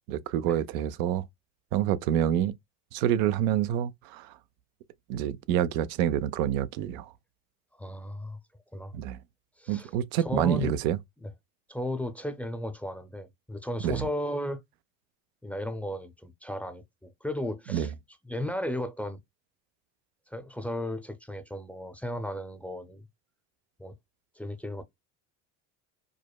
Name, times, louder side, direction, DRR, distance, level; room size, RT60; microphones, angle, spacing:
voice 1, 0.1-1.2 1.7-2.5 2.9-4.3 5.1-7.1 8.9-9.2 9.7-11.0 13.8-14.1 17.7-17.9, right 10 dB, 80° right, 0.6 m, -27 dB
voice 2, 7.7-8.4 8.7-9.0 9.6-9.9 10.2-10.7 11.2-11.3 11.7-14.6 15.4-17.9 18.2-19.2 20.3-23.0 23.8-23.9 24.4-24.8, left 1 dB, 5° left, 0.5 m, -35 dB
5.0 x 2.1 x 2.3 m
supercardioid pair, 95°, 39 cm